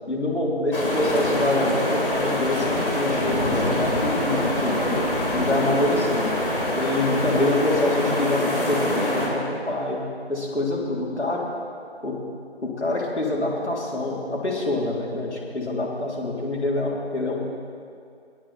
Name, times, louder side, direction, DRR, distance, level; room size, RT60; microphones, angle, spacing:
voice 1, 0.1-4.9 5.3-6.4 6.8-11.5 12.0-12.2 12.6-17.4, left 2 dB, 85° left, -3 dB, 3.7 m, -26 dB
sound 1, 0.7-9.3, left 1 dB, 55° left, 3.0 m, -25 dB
20.5 x 8.9 x 4.4 m, 2.4 s
figure-of-eight pair, 175°, 33 cm